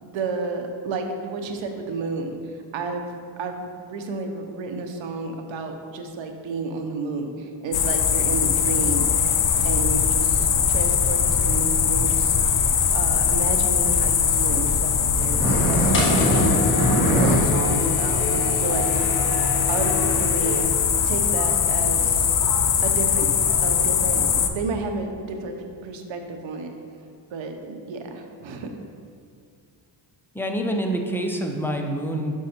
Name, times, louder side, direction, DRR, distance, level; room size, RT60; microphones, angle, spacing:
voice 1, 0.0-9.1 9.6-12.4 12.9-16.5 17.1-19.1 19.7-20.6 21.0-22.3 22.8-23.3 23.6-25.6 25.8-26.7 27.3-28.7, right 3 dB, 70° right, 4 dB, 1.0 m, -31 dB
sound 1, 7.7-24.5, left 7 dB, 40° left, 0.6 m, -21 dB
sound 2, 15.2-17.4 17.8-17.9 18.1-18.2 18.9-19.0 19.7-19.8 20.6-20.7, right 1 dB, 30° right, 1.6 m, -22 dB
sound 3, 15.9-20.6, left 1 dB, 25° left, 1.7 m, -29 dB
voice 2, 30.3-32.5, right 1 dB, 5° left, 2 dB, 0.6 m, -26 dB
6.3 x 5.5 x 4.4 m, 2.2 s
cardioid pair, 100°, 47 cm